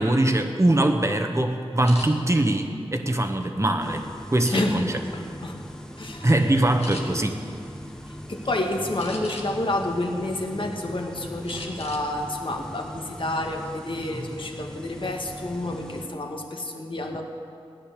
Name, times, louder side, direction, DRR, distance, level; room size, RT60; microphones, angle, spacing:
voice 1, 0.0-5.0 6.2-7.4 14.1-14.3, right 1 dB, 25° right, 5 dB, 1.4 m, -22 dB
sound 1, 1.8-2.1 2.7-3.7 4.4-5.0 5.5-5.8 6.1-6.3 6.8-7.0 9.0-9.7 10.2-10.9 11.5-12.1 12.4-12.6 13.0-13.4, left 2 dB, 85° left, 1.8 m, -41 dB
sound 2, 3.8-16.1, equal, 5° left, 1.1 m, -40 dB
voice 2, 4.5-5.6 6.0-6.3 8.1-17.2, left 1 dB, 50° left, 2 dB, 1.8 m, -29 dB
16.5 x 10.5 x 6.7 m, 2.5 s
wide cardioid pair, 55°, 11 cm